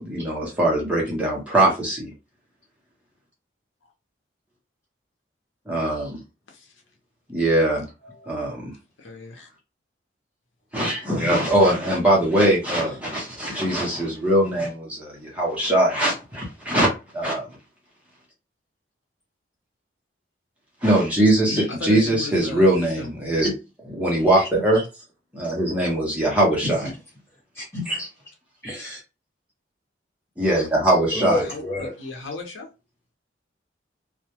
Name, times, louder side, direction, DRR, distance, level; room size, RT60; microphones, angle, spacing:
voice 1, 0.0-2.1 5.7-6.2 7.3-7.9 8.3-8.7 10.7-16.9 17.1-17.5 20.8-23.5 23.8-24.8 25.3-26.9 27.9-28.0 30.4-31.4, right 1 dB, 5° right, -4 dB, 0.6 m, -21 dB
voice 2, 9.0-9.5 21.5-23.1 31.3-32.7, left 3 dB, 85° left, 2 dB, 0.7 m, -35 dB
voice 3, 27.5-28.0 28.6-29.0 31.1-31.9, left 1 dB, 15° left, -5 dB, 1.2 m, -29 dB
2.2 x 2.0 x 2.8 m, 0.28 s
head